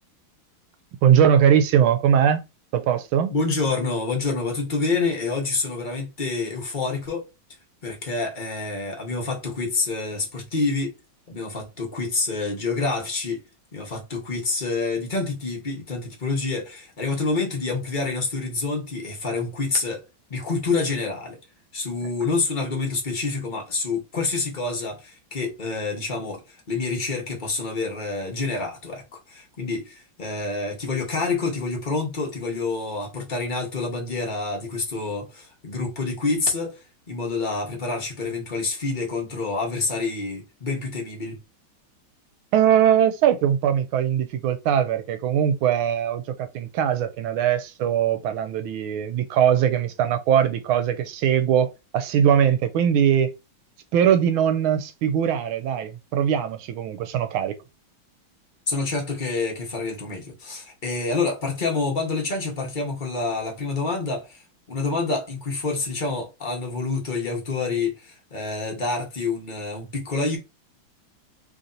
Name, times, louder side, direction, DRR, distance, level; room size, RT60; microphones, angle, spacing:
voice 1, 1.0-2.4 2.7-3.3 42.5-53.3 53.9-57.6, right 9 dB, 80° right, 1.4 m, -21 dB
voice 2, 3.3-7.2 7.8-10.9 11.3-13.4 13.7-20.0 20.3-21.4 21.7-36.8 37.1-41.4 58.7-64.4 64.7-70.4, left 3 dB, 35° left, 0.8 m, -27 dB
3.4 x 2.7 x 3.8 m
omnidirectional pair, 2.2 m